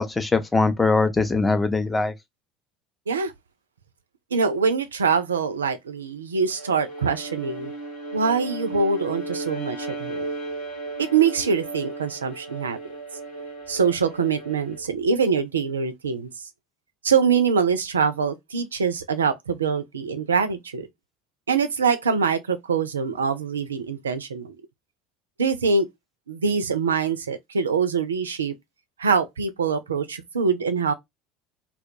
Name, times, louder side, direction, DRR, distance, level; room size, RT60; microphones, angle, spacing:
voice 1, 0.0-2.1, left 3 dB, 15° left, 0.5 m, -21 dB
voice 2, 4.3-7.7 8.1-10.3 11.0-12.8 13.7-16.3 17.0-20.9 21.5-24.6 25.4-25.9 26.3-28.5 29.0-30.9, right 5 dB, 75° right, 0.3 m, -24 dB
Bowed string instrument, 6.5-14.9, right 2 dB, 70° left, 1.1 m, -35 dB
2.2 x 2.2 x 2.6 m
figure-of-eight pair, 65°, 0 cm